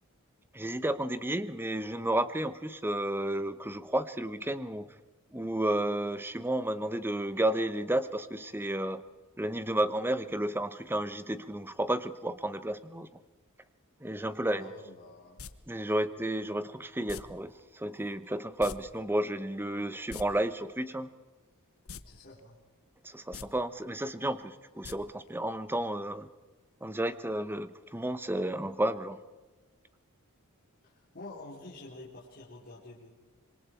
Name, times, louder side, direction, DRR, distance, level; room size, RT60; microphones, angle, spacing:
voice 1, 0.5-4.9 5.3-9.0 9.4-13.1 14.0-14.7 15.7-21.1 23.0-26.3 26.8-29.2, right 1 dB, 10° right, 12 dB, 0.9 m, -32 dB
voice 2, 14.6-15.4 22.0-22.6 30.8-33.1, left 2 dB, 45° left, -6 dB, 3.9 m, -48 dB
sound 1, 15.4-15.5 17.1-17.2 18.6-18.8 19.0-19.1 20.0-20.2 21.9-22.0 22.4-22.5 23.2-23.5 24.8-24.9 25.3-25.4, left 6 dB, 75° left, 1.0 m, -42 dB
26.5 x 23.0 x 4.5 m, 1.2 s
head